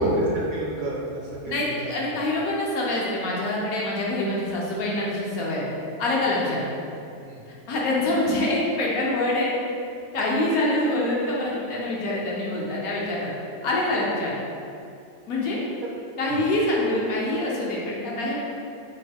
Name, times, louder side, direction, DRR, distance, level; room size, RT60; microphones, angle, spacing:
voice 1, 0.0-2.2 7.2-7.4 16.3-16.4, right 3 dB, 70° right, -3 dB, 1.0 m, -32 dB
voice 2, 1.4-5.6 6.0-6.6 7.7-9.5 10.1-13.3 13.6-14.3 15.3-15.6 16.2-18.4, left 1 dB, 70° left, -4 dB, 1.1 m, -25 dB
4.4 x 2.2 x 3.4 m, 2.5 s
omnidirectional pair, 1.7 m